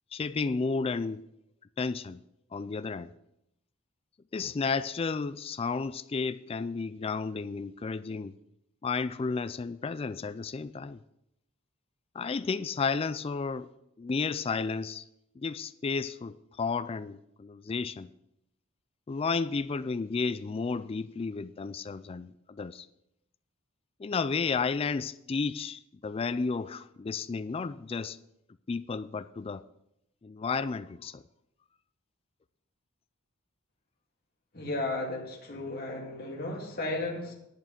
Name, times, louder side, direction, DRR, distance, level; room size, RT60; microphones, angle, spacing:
voice 1, 0.1-1.2 1.8-2.2 2.5-3.1 4.3-8.3 8.8-11.0 12.2-13.7 14.0-15.0 15.4-18.1 19.1-22.9 24.0-28.2 28.7-29.6 30.2-31.2, left 4 dB, 25° left, 0.3 m, -32 dB
voice 2, 34.5-37.3, left 2 dB, 45° left, 2.2 m, -34 dB
10.5 x 8.6 x 5.2 m
head